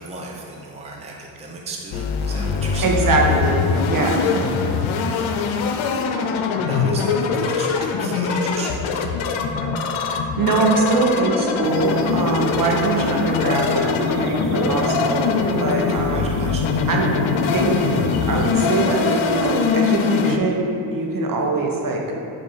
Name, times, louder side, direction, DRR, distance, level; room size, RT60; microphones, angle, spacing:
voice 1, 0.0-3.0 6.6-9.2 15.9-16.8, right 3 dB, 15° right, -2 dB, 0.6 m, -36 dB
sound 1, 1.9-20.4, left 5 dB, 85° left, 0.6 m, -23 dB
voice 2, 2.8-4.3 10.1-16.3 16.9-17.1 17.5-22.0, right 3 dB, 45° right, 0 dB, 1.1 m, -22 dB
sound 2, 11.6-18.5, left 4 dB, 55° left, 0.9 m, -27 dB
7.8 x 2.7 x 5.6 m, 2.6 s
cardioid pair, 85°, 46 cm